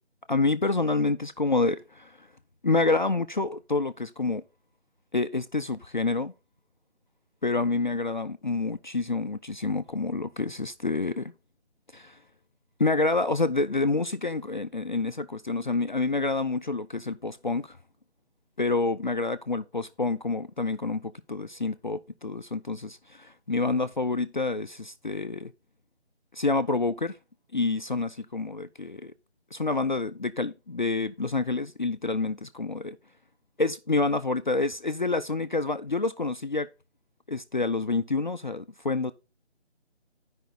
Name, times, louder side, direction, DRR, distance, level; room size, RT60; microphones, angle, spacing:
voice 1, 0.3-2.3 2.6-4.4 5.1-6.3 7.4-11.3 11.9-12.2 12.8-17.8 18.6-25.5 26.3-27.2 27.5-29.1 29.5-33.0 33.6-36.7 37.3-39.1, left 3 dB, 45° left, 0.5 m, -28 dB
11.0 x 5.2 x 3.9 m
figure-of-eight pair, 155°, 34 cm